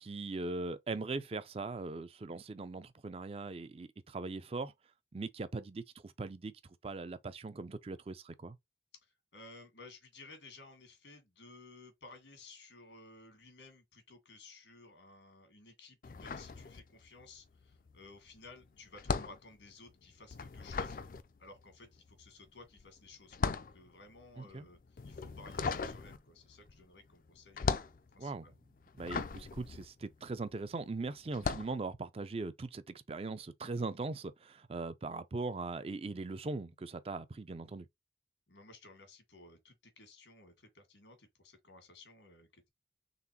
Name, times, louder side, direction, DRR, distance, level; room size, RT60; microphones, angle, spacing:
voice 1, 0.0-4.7 5.1-6.5 6.8-8.6 24.4-24.7 28.2-28.5 29.0-37.9, right 3 dB, 35° right, 0.4 m, -40 dB
voice 2, 9.0-21.0 21.4-28.5 38.5-42.7, left 3 dB, 90° left, 1.7 m, -56 dB
sound 1, 16.0-17.3 17.5-30.7 31.3-31.8, left 4 dB, 50° left, 0.4 m, -38 dB
3.9 x 3.4 x 2.8 m
head